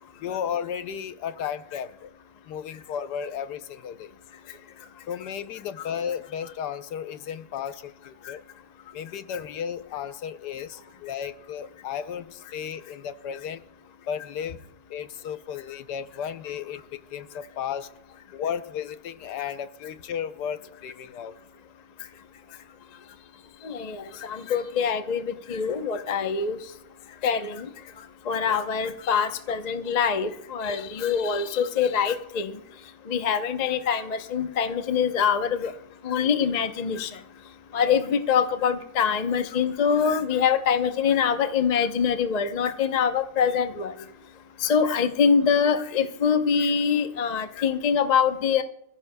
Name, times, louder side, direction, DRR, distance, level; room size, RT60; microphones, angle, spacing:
voice 1, 0.2-2.1 2.5-4.1 5.1-8.4 8.9-13.6 14.1-14.6 14.9-17.9 18.3-21.3 28.4-28.6 37.7-38.0, left 8 dB, 70° left, 11 dB, 1.2 m, -34 dB
voice 2, 23.6-26.6 27.2-27.7 28.3-32.6 33.1-35.7 36.0-37.1 37.7-43.9 44.6-48.6, left 6 dB, 50° left, 8 dB, 0.5 m, -24 dB
25.0 x 15.0 x 2.2 m, 0.78 s
omnidirectional pair, 2.0 m